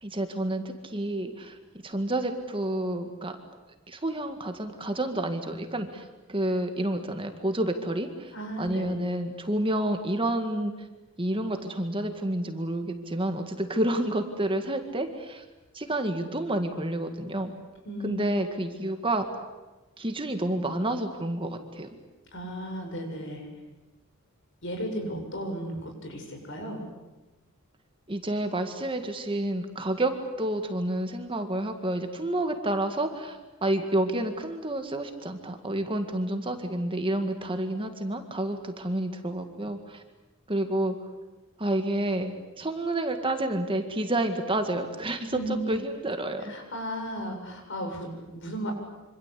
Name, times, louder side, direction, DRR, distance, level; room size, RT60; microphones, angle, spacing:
voice 1, 0.0-1.6 1.8-3.4 3.9-10.7 11.2-15.4 15.7-17.5 18.0-19.4 20.0-21.9 28.1-30.1 30.4-40.0 40.5-41.0 41.6-42.3 42.6-45.3 45.7-46.5, right 1 dB, 25° right, 6 dB, 2.0 m, -29 dB
voice 2, 8.3-9.0 17.9-18.1 22.3-23.5 24.6-26.8 45.3-45.8 46.4-48.7, equal, 55° left, 4 dB, 7.3 m, -35 dB
26.5 x 26.0 x 8.5 m, 1.1 s
head